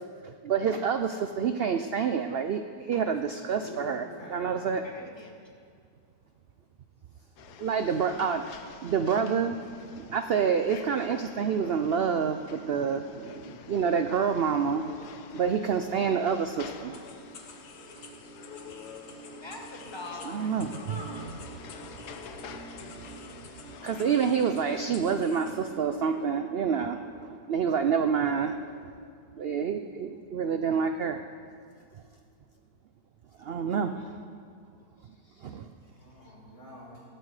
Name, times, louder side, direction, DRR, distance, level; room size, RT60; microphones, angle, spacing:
voice 1, 0.0-4.8 7.6-8.5 8.8-14.9 15.3-17.0 20.3-20.9 23.8-28.9 29.4-31.2 33.4-34.2 35.4-35.7, right 6 dB, 80° right, 8 dB, 0.5 m, -28 dB
voice 2, 3.4-5.1 7.1-8.0 13.3-13.8 35.8-37.0, equal, 50° left, -6 dB, 5.2 m, -48 dB
voice 3, 4.8-5.5 19.4-20.5 20.9-21.3, left 2 dB, 15° left, 1 dB, 1.5 m, -43 dB
sound 1, 7.4-24.8, left 7 dB, 85° left, 1.4 m, -48 dB
sound 2, 13.8-25.8, right 8 dB, 55° right, 1.1 m, -49 dB
sound 3, 16.9-25.6, left 4 dB, 70° left, 1.7 m, -52 dB
19.5 x 12.0 x 4.9 m, 2.2 s
omnidirectional pair, 1.7 m